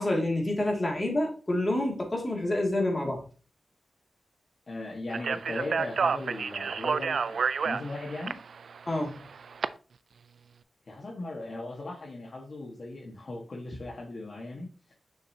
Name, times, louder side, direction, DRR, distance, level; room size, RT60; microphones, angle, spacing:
voice 1, 0.0-3.2 8.9-9.2, left 1 dB, 25° left, 0 dB, 2.3 m, -28 dB
voice 2, 4.7-7.4 7.6-8.4 10.9-14.9, left 2 dB, 50° left, -2 dB, 1.5 m, -38 dB
Speech, 5.1-9.7, right 5 dB, 75° right, 0.3 m, -30 dB
6.6 x 6.5 x 2.8 m, 0.37 s
wide cardioid pair, 130°, 0 cm